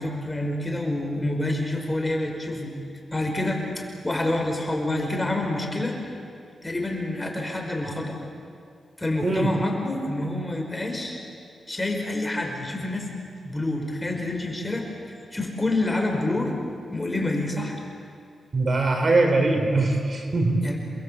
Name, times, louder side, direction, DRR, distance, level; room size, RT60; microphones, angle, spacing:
voice 1, 0.0-2.7 3.1-6.0 6.6-8.2 9.0-11.2 11.7-13.1 13.4-14.9 15.3-16.5 16.9-17.8 20.6-20.8, left 2 dB, 15° left, 1 dB, 5.3 m, -27 dB
voice 2, 18.5-20.6, right 2 dB, 45° right, 3 dB, 4.4 m, -21 dB
29.5 x 22.0 x 8.4 m, 2.3 s
cardioid pair, 90°, 0 cm